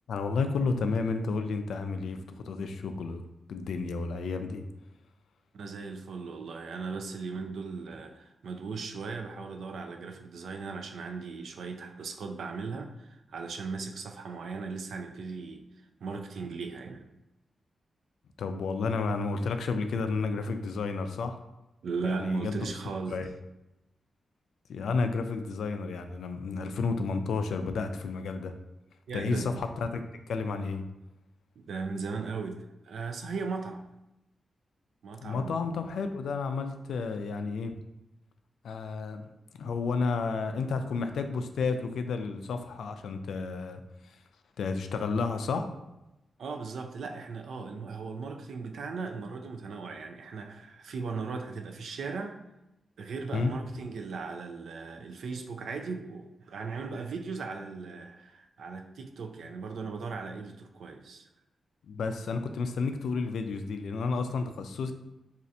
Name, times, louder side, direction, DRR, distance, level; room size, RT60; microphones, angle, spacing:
voice 1, 0.1-3.2 3.5-4.6 18.4-21.4 22.0-22.6 23.1-23.3 24.7-28.5 29.1-30.0 30.3-30.8 35.2-37.8 38.6-39.3 39.6-44.2 44.6-45.7 53.3-53.5 61.9-64.9, left 4 dB, 90° left, 0.3 m, -31 dB
voice 2, 5.5-15.6 16.0-17.1 21.8-23.2 29.1-29.5 31.6-33.8 35.0-35.5 46.4-52.4 53.0-61.3, right 4 dB, 80° right, 0.3 m, -37 dB
2.6 x 2.4 x 4.2 m
wide cardioid pair, 125°, 0 cm